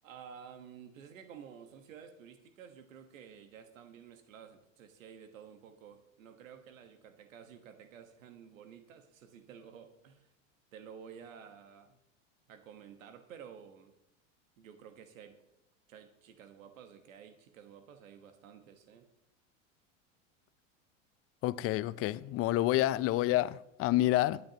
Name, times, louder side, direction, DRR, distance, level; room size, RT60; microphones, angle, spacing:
voice 1, 0.0-10.3 10.7-12.0 12.5-13.9 14.6-15.4 15.9-19.1, right 7 dB, 85° right, 1.5 m, -52 dB
voice 2, 21.4-24.4, left 15 dB, 35° left, 0.5 m, -28 dB
19.5 x 10.5 x 3.0 m
hypercardioid pair, 110°, 39 cm